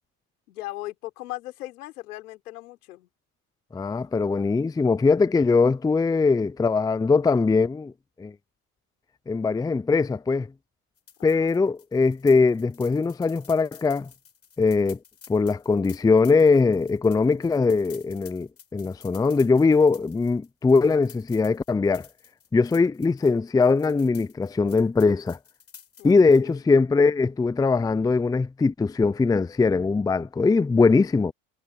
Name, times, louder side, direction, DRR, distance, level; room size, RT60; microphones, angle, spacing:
voice 1, 0.5-3.1 11.2-11.7 26.0-26.7, left 17 dB, 80° left, 4.4 m, -38 dB
voice 2, 3.7-7.9 8.2-8.3 9.3-10.5 11.2-14.1 14.6-15.0 15.3-22.1 22.5-25.4 26.0-31.3, left 4 dB, 10° left, 0.6 m, -21 dB
sound 1, 11.0-26.5, left 7 dB, 30° left, 6.4 m, -51 dB
hypercardioid pair, 80°, 45 cm